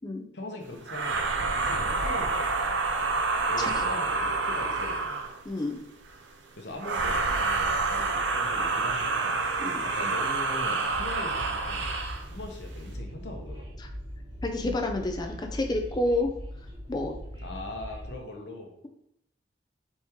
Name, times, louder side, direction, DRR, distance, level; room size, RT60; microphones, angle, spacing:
voice 1, 0.3-2.8 3.5-5.3 6.6-9.4 9.8-11.9 12.2-13.8 17.4-18.7, left 1 dB, 70° left, 2 dB, 0.9 m, -41 dB
sound 1, 0.9-5.4 6.8-12.3, right 3 dB, 85° right, 0.5 m, -28 dB
voice 2, 5.5-5.8 9.6-9.8 14.4-16.3 16.9-17.1, left 2 dB, 25° left, 4 dB, 0.4 m, -29 dB
Train, 10.9-18.1, equal, 30° right, 1.3 m, -40 dB
4.3 x 3.0 x 3.5 m, 0.77 s
head